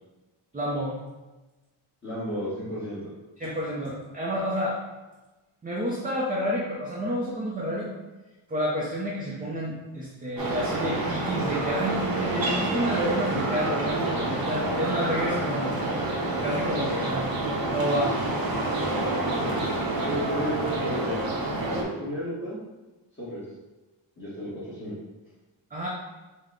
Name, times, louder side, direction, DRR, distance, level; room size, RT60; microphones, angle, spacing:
voice 1, 0.5-0.9 3.4-4.8 5.6-7.9 8.5-15.8 16.4-17.3 17.7-18.2 25.7-25.9, equal, 20° right, -4 dB, 0.5 m, -29 dB
voice 2, 2.0-3.1 20.0-21.2 21.7-22.6 23.2-23.5 24.2-25.0, equal, 25° left, -11 dB, 1.1 m, -33 dB
sound 1, 10.4-21.8, right 2 dB, 45° right, 0.8 m, -28 dB
5.7 x 2.1 x 3.6 m, 1.1 s
wide cardioid pair, 170°, 50 cm